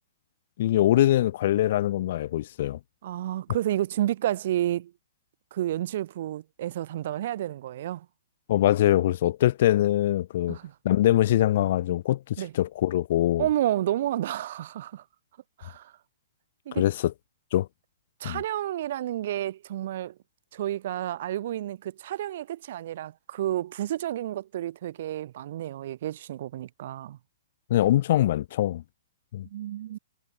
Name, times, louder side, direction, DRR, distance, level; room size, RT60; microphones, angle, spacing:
voice 1, 0.6-2.8 8.5-10.6 10.8-13.5 16.7-17.1 17.5-17.7 18.2-18.4 27.7-28.8 29.3-29.5, left 13 dB, 50° left, 0.4 m, -23 dB
voice 2, 3.0-4.9 5.5-8.1 10.5-10.7 12.4-12.5 13.4-15.0 15.6-15.9 16.7-16.8 18.2-20.1 20.5-27.2 29.5-30.0, right 12 dB, 50° right, 0.8 m, -30 dB
figure-of-eight pair, 115°, 0 cm